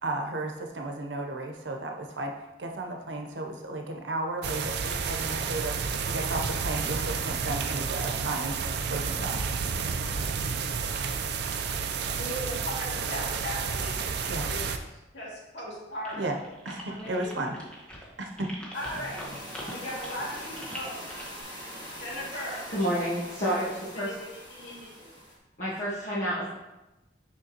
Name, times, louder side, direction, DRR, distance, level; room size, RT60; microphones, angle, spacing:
voice 1, 0.0-9.4 14.3-14.5 16.2-16.4 16.6-17.5 18.2-18.5, right 2 dB, 85° right, 3 dB, 0.8 m, -34 dB
sound 1, 4.4-14.8, right 5 dB, 65° right, 0.5 m, -31 dB
voice 2, 12.1-14.7 15.1-16.3 16.9-17.6 18.7-19.2 19.7-21.0 22.0-22.6 23.5-23.6 23.9-25.1, equal, 85° left, -6 dB, 2.3 m, -38 dB
sound 2, 16.0-21.4, equal, 5° left, 1.2 m, -43 dB
sound 3, 18.7-25.4, equal, 25° left, 1.5 m, -42 dB
voice 3, 22.7-24.1 25.6-26.6, equal, 45° left, -8 dB, 1.1 m, -29 dB
6.4 x 5.7 x 2.9 m, 1.0 s
head